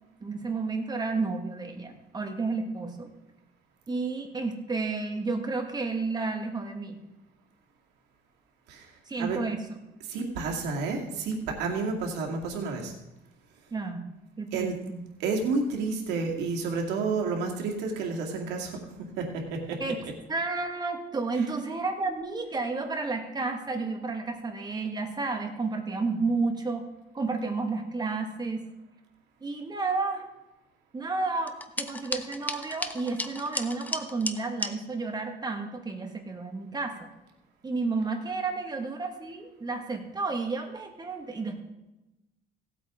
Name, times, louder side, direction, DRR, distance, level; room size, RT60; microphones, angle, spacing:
voice 1, 0.2-3.1 3.9-7.0 9.1-9.6 13.7-14.0 14.4-15.0 19.8-20.0 20.3-26.8 27.1-28.6 29.4-30.3 30.9-37.1 37.6-41.6, right 3 dB, 25° right, 4 dB, 1.8 m, -31 dB
voice 2, 8.7-9.4 10.0-12.9 14.5-14.8 15.2-19.9 21.3-21.5, right 4 dB, 90° right, 0 dB, 2.3 m, -31 dB
sound 1, 31.5-34.7, left 2 dB, 10° left, 0.7 m, -34 dB
17.0 x 8.5 x 3.7 m, 0.98 s
cardioid pair, 110°, 17 cm